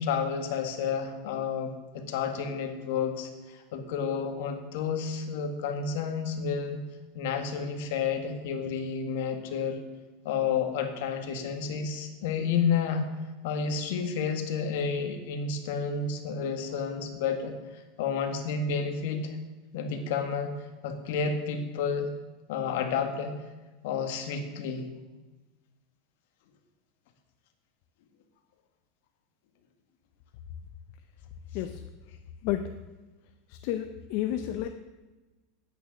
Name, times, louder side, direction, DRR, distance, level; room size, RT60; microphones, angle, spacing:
voice 1, 0.0-6.8 7.1-9.8 10.2-13.1 13.4-19.4 19.7-20.5 20.8-22.1 22.5-23.3 23.8-24.9, left 6 dB, 70° left, 6 dB, 1.7 m, -30 dB
voice 2, 33.5-34.7, left 12 dB, 55° left, 8 dB, 0.6 m, -31 dB
9.2 x 9.0 x 6.3 m, 1.2 s
supercardioid pair, 150°, 0 cm